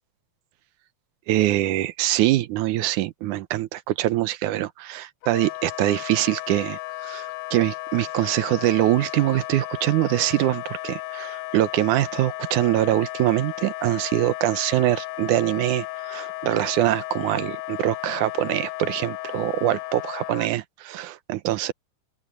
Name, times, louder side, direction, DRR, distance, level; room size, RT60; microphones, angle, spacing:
voice 1, 1.3-21.7, right 15 dB, 90° right, 2.3 m, -24 dB
Wind instrument woodwind instrument, 5.2-20.5, left 19 dB, 80° left, 1.7 m, -34 dB
open air
omnidirectional pair, 3.4 m